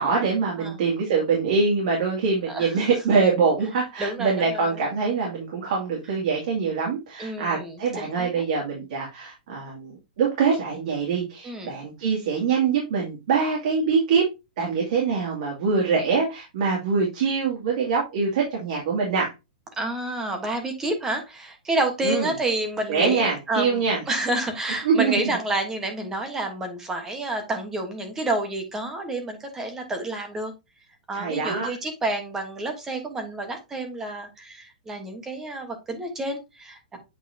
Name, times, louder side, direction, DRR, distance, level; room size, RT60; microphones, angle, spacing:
voice 1, 0.0-14.3 14.6-19.3 22.0-22.3 22.9-24.0 24.8-25.1 31.1-31.7, right 5 dB, 55° right, -2 dB, 2.5 m, -24 dB
voice 2, 4.0-4.8 7.2-8.5 11.4-11.7 19.7-30.5 31.1-37.0, right 2 dB, 10° right, 5 dB, 1.3 m, -29 dB
8.4 x 4.4 x 2.8 m, 0.24 s
hypercardioid pair, 170°, 5 cm